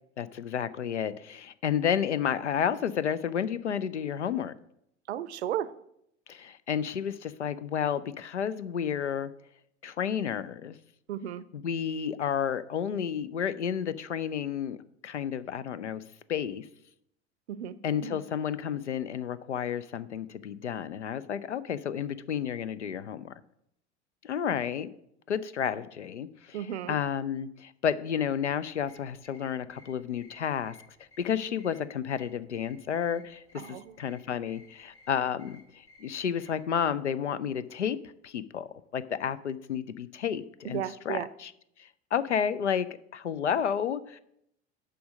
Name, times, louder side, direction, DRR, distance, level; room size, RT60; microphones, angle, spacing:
voice 1, 0.2-4.5 6.3-9.3 9.8-10.8 11.5-14.8 15.0-16.0 16.3-16.7 17.8-23.3 24.2-24.9 25.3-26.6 26.9-30.8 31.2-38.0 38.2-41.5 41.8-44.2, left 8 dB, 80° left, 16 dB, 0.5 m, -31 dB
voice 2, 5.1-5.7 11.1-11.4 17.5-17.8 18.0-18.2 26.5-27.0 33.6-33.9 40.6-41.3, right 10 dB, 70° right, 16 dB, 0.6 m, -34 dB
sound 1, 28.6-36.7, left 1 dB, 65° left, 1.9 m, -59 dB
6.8 x 5.1 x 6.2 m, 0.75 s
figure-of-eight pair, 75°, 35 cm